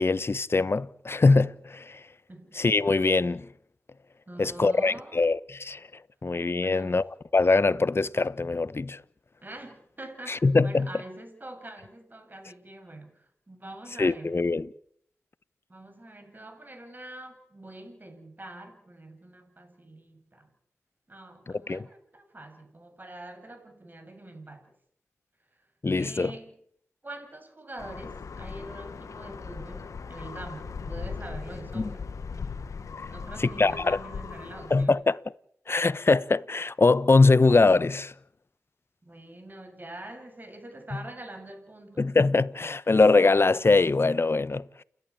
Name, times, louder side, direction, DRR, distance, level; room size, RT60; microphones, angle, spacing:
voice 1, 0.0-2.0 2.6-3.5 4.4-5.8 6.2-7.0 7.3-9.0 10.3-10.9 14.0-14.7 21.7-21.9 25.8-26.3 31.7-31.9 33.4-34.0 34.7-35.2 35.7-38.1 42.0-44.8, left 3 dB, 50° left, 1.0 m, -22 dB
voice 2, 2.3-2.6 4.3-5.2 6.6-7.0 9.4-14.5 15.7-20.5 21.1-24.7 25.9-26.5 27.0-32.1 33.1-35.0 39.0-42.1, right 1 dB, 35° right, 7.7 m, -44 dB
sound 1, 27.8-34.9, left 5 dB, 90° left, 1.5 m, -38 dB
29.5 x 12.0 x 8.6 m
cardioid pair, 40°, 5 cm